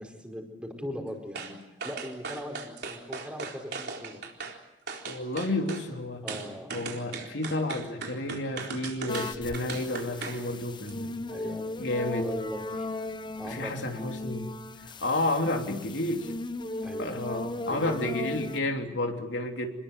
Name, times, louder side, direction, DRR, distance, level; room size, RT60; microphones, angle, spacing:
voice 1, 0.0-4.2 6.2-6.7 11.3-11.7 12.2-12.9 13.4-14.2 16.8-18.0, equal, 5° right, 2 dB, 4.8 m, -40 dB
sound 1, 1.3-1.5 1.8-4.6 4.9-5.8 6.3-10.4 10.8-10.9, right 4 dB, 60° right, 4.0 m, -38 dB
voice 2, 5.0-6.2 6.7-11.2 11.8-12.3 13.4-14.4 15.0-16.3 17.0-19.7, left 2 dB, 75° left, 3 dB, 3.3 m, -31 dB
sound 2, 9.1-18.6, left 2 dB, 25° left, 0.9 m, -37 dB
27.5 x 21.0 x 8.1 m, 0.93 s
head